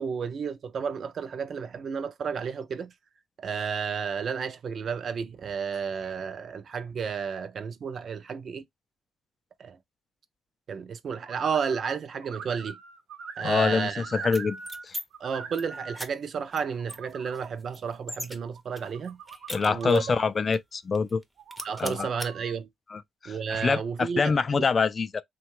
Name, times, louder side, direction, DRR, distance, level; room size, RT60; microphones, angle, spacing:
voice 1, 0.0-2.9 3.4-8.6 9.6-9.8 10.7-12.8 13.4-14.1 15.2-19.2 19.7-20.2 21.6-22.7 23.3-24.6, right 6 dB, 55° right, 0.4 m, -32 dB
sound 1, 11.2-11.9 12.2-14.8 15.1-16.0 16.5-17.5 18.4-20.3 21.4-22.5, right 5 dB, 70° right, 0.9 m, -42 dB
voice 2, 13.4-15.0 19.5-21.2 21.8-22.1 22.9-25.2, left 5 dB, 35° left, 0.3 m, -26 dB
sound 2, 14.2-15.0 15.4-15.6 16.0-16.1 16.5-16.6 16.9-18.4 18.8-20.2 20.5-20.6 20.9-21.2 21.5-22.3, equal, 5° right, 0.6 m, -39 dB
2.8 x 2.2 x 3.0 m
cardioid pair, 90°, 0 cm